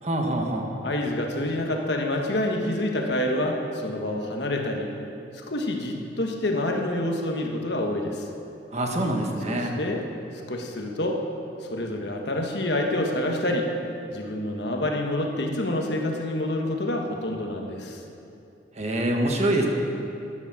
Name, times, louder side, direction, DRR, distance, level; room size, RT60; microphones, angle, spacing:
voice 1, 0.0-0.7 8.7-9.8 18.7-19.7, right 1 dB, 40° right, 2 dB, 1.4 m, -25 dB
voice 2, 0.8-4.9 5.3-8.3 9.5-10.0 10.5-11.2 11.6-13.7 14.1-18.0, left 1 dB, 65° left, 2 dB, 1.4 m, -27 dB
13.5 x 10.0 x 6.2 m, 2.8 s
head